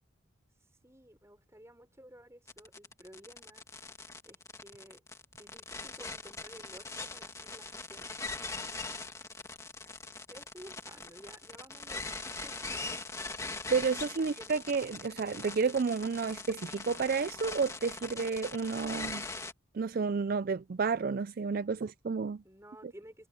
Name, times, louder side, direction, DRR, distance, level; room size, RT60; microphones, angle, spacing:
voice 1, 0.8-3.6 4.2-5.0 5.4-8.1 10.3-12.6 14.2-14.5 22.4-23.3, equal, 15° right, 5.8 m, -53 dB
sound 1, 2.5-19.5, left 3 dB, 15° left, 2.5 m, -41 dB
voice 2, 13.7-19.3 19.7-22.4, right 5 dB, 45° right, 0.4 m, -31 dB
head